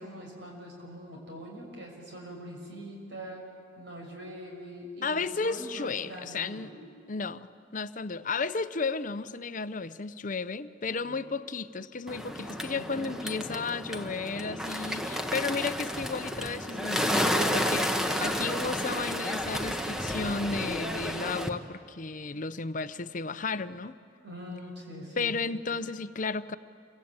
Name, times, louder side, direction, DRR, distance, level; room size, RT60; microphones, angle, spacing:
voice 1, 0.0-3.4 3.8-6.7 10.9-11.2 12.7-13.3 24.2-25.3, equal, 60° right, 0 dB, 6.4 m, -43 dB
voice 2, 5.0-6.7 7.1-24.0 25.2-26.5, left 4 dB, 40° left, 13 dB, 0.7 m, -33 dB
Bird, 12.1-21.5, equal, 5° right, 1.2 m, -31 dB
28.0 x 24.0 x 8.9 m, 2.4 s
head